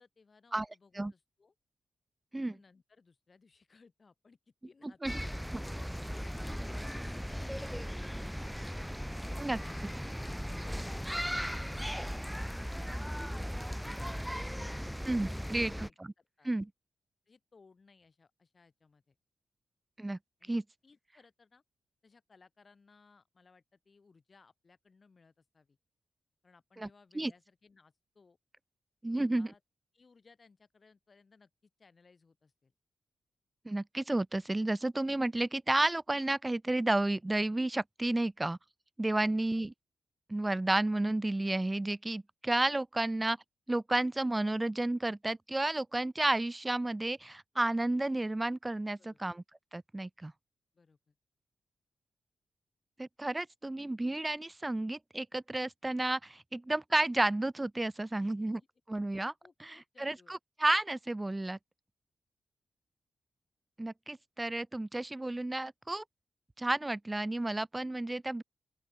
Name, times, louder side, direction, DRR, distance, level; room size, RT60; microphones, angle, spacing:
voice 1, 0.0-1.5 2.4-5.5 5.8-7.6 14.4-16.5 17.3-19.2 20.4-21.6 22.0-25.8 26.4-28.4 29.1-29.6 29.9-32.7 39.1-39.4 49.0-49.2 50.7-51.2 58.1-58.7 59.4-60.3, left 4 dB, 50° left, 5.7 m, -63 dB
sound 1, 5.1-15.9, equal, ahead, 1.0 m, -37 dB
voice 2, 15.1-15.9 16.4-16.7 20.0-20.2 20.5-20.6 26.8-26.9 27.1-27.3 29.0-29.5 33.7-38.6 39.0-39.7 40.3-43.4 43.7-49.4 49.7-50.3 53.0-58.6 58.9-59.3 59.6-61.6 63.8-66.0 66.6-68.4, right 2 dB, 20° right, 0.4 m, -32 dB
open air
supercardioid pair, 40°, 0 cm